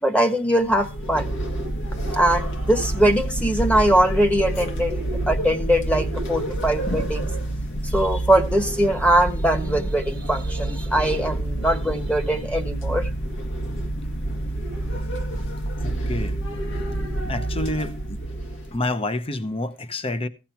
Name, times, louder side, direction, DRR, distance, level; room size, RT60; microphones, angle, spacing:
voice 1, 0.0-1.3 2.1-7.3 7.8-13.1, right 1 dB, 5° left, 1.3 m, -21 dB
sound 1, 0.6-18.8, right 1 dB, 60° left, 2.0 m, -28 dB
voice 2, 15.8-16.4 17.3-18.2 18.7-20.3, left 2 dB, 25° left, 0.8 m, -28 dB
15.5 x 7.5 x 4.4 m
head